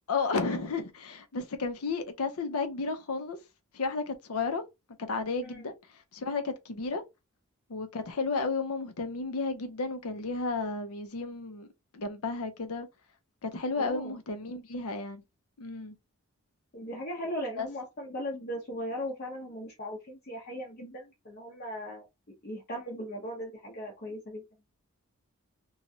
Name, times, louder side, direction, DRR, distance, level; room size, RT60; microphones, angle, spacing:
voice 1, 0.1-3.4 3.7-4.6 5.0-5.7 6.1-7.0 7.7-11.7 11.9-12.9 13.4-15.2 15.6-16.0 17.6-17.7, left 4 dB, 85° left, 0.7 m, -32 dB
voice 2, 13.8-14.1 16.7-22.0 22.4-24.4, equal, 45° left, 0.8 m, -38 dB
3.0 x 2.3 x 2.7 m
head